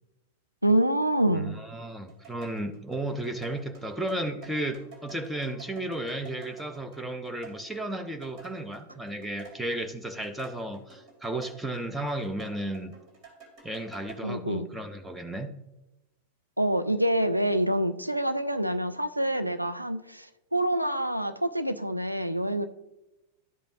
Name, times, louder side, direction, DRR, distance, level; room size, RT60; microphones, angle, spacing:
voice 1, 0.6-1.6 14.2-14.7 16.6-20.2 20.5-22.7, right 1 dB, 90° right, 9 dB, 0.4 m, -26 dB
voice 2, 1.3-12.9 13.6-15.6, right 1 dB, 5° right, 7 dB, 0.6 m, -34 dB
sound 1, 2.1-11.8 12.1-14.2, right 6 dB, 40° right, 2.6 m, -49 dB
12.0 x 5.1 x 2.7 m, 0.95 s
figure-of-eight pair, 90°, 0 cm